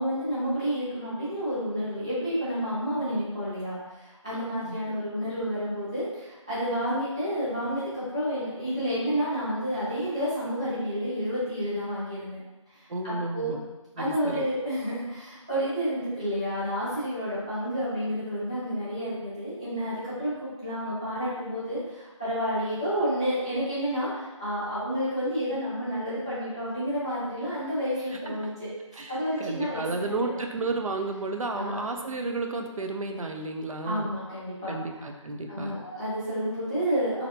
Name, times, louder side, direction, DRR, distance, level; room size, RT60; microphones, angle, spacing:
voice 1, 0.0-12.4 12.7-13.5 14.0-28.7 29.1-30.4 31.6-31.8 33.8-34.8 35.5-37.3, equal, 10° right, -14 dB, 0.6 m, -30 dB
voice 2, 4.3-4.8 12.9-13.6 14.0-14.5 28.3-28.4 28.9-34.1 34.7-35.8, right 3 dB, 80° right, 3 dB, 0.5 m, -32 dB
4.1 x 2.7 x 2.6 m, 1.1 s
figure-of-eight pair, 175°, 17 cm